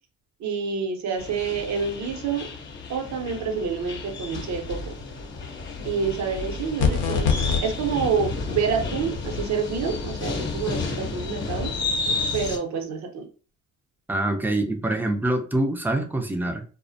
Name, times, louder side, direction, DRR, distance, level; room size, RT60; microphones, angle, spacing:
voice 1, 0.4-2.5 2.9-4.8 5.8-11.7 12.3-13.3, right 6 dB, 70° right, 3 dB, 0.7 m, -28 dB
sound 1, 1.2-12.6, left 3 dB, 40° left, 0.8 m, -31 dB
sound 2, 6.8-7.6, left 6 dB, 85° left, 0.6 m, -22 dB
voice 2, 14.1-16.6, right 1 dB, 5° right, 4 dB, 0.4 m, -25 dB
2.4 x 2.1 x 2.6 m, 0.37 s
cardioid pair, 90°, 30 cm